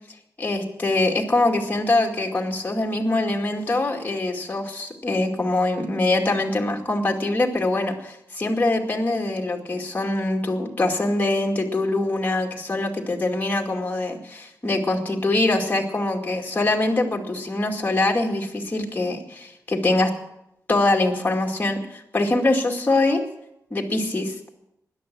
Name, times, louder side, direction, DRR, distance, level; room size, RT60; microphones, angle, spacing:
voice 1, 0.4-20.1 20.7-23.2 23.7-24.3, left 2 dB, 25° left, 2 dB, 2.3 m, -23 dB
16.5 x 11.5 x 6.1 m, 0.81 s
wide cardioid pair, 130°, 7 cm